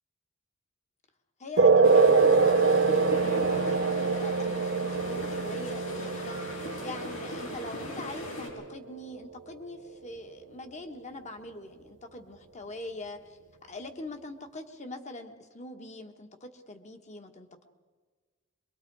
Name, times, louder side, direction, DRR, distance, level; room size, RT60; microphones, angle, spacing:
voice 1, 1.4-17.6, left 2 dB, 35° left, 6 dB, 1.5 m, -43 dB
sound 1, 1.6-8.6, right 4 dB, 60° right, 0.9 m, -24 dB
sound 2, 1.8-8.5, left 1 dB, 80° left, 6.0 m, -39 dB
25.0 x 23.0 x 4.8 m, 1.5 s
head